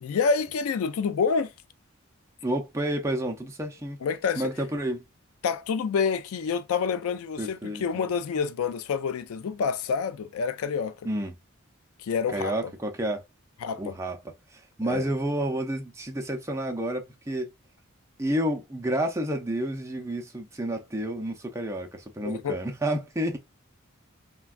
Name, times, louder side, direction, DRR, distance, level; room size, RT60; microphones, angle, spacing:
voice 1, 0.0-1.5 4.0-4.5 5.4-11.0 12.0-12.7 13.6-14.0 14.8-15.1 22.2-22.6, left 5 dB, 90° left, 0.4 m, -28 dB
voice 2, 2.4-4.0 4.4-5.0 7.4-8.0 11.0-11.3 12.3-13.2 13.8-14.2 14.5-17.5 18.2-23.4, right 1 dB, 15° right, 0.5 m, -30 dB
3.3 x 2.2 x 2.3 m
head